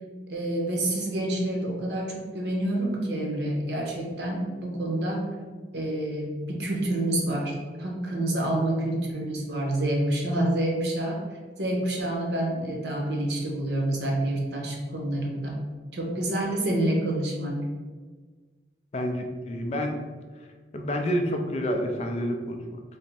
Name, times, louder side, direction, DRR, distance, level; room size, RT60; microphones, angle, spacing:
voice 1, 0.3-5.3 5.7-11.2 11.6-15.6 15.9-17.6, right 1 dB, 75° right, -1 dB, 0.8 m, -28 dB
voice 2, 18.9-20.0 20.7-22.8, equal, 35° left, 3 dB, 0.3 m, -28 dB
3.4 x 2.0 x 4.1 m, 1.4 s
head